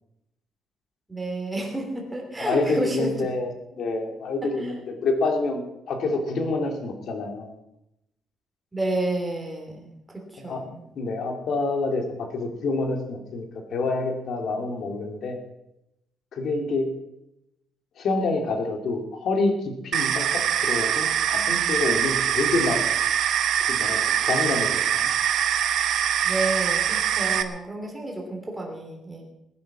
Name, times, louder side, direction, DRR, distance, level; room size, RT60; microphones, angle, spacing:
voice 1, 1.1-3.1 4.6-4.7 8.7-10.8 26.2-29.2, right 2 dB, 10° right, 1 dB, 3.1 m, -30 dB
voice 2, 2.4-5.6 5.9-7.5 10.4-10.6 11.0-13.5 13.7-15.4 16.3-16.9 18.0-22.8 23.7-25.1, left 3 dB, 50° left, 4 dB, 2.6 m, -27 dB
sound 1, 19.9-27.4, right 9 dB, 60° right, 1.0 m, -23 dB
20.0 x 10.5 x 6.1 m, 0.87 s
cardioid pair, 170°, 0 cm